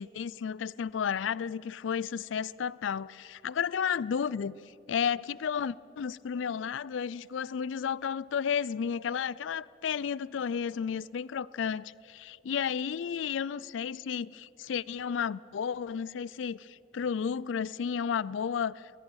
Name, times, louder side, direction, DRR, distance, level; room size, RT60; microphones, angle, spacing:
voice 1, 0.0-4.6 4.9-18.9, left 7 dB, 90° left, 0.4 m, -32 dB
21.5 x 21.0 x 6.3 m
head